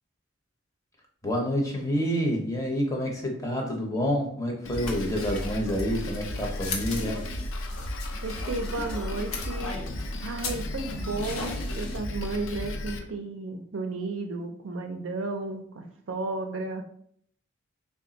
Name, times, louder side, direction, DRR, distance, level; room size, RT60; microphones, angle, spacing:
voice 1, 1.2-7.2, equal, 15° left, 0 dB, 0.6 m, -28 dB
Drum kit, 4.6-13.0, left 1 dB, 65° left, 0.5 m, -34 dB
sound 1, 4.7-12.0, left 3 dB, 90° left, 0.8 m, -38 dB
voice 2, 8.2-16.8, right 3 dB, 65° right, 5 dB, 0.5 m, -33 dB
3.4 x 2.4 x 3.9 m, 0.65 s
head